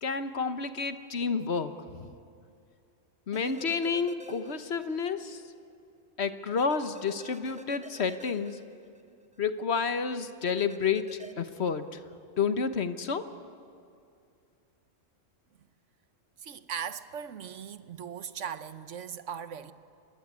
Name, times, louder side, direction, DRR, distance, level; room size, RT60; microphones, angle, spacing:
voice 1, 0.0-1.7 2.0-2.1 3.3-5.4 6.2-8.6 9.4-12.0 12.4-13.3, left 5 dB, 60° left, 1.3 m, -30 dB
sound 1, 3.3-5.0 5.3-5.4 6.6-9.4 10.6-11.3, equal, 5° right, 0.8 m, -47 dB
voice 2, 16.4-19.7, right 8 dB, 70° right, 1.2 m, -39 dB
25.5 x 21.0 x 9.6 m
omnidirectional pair, 1.3 m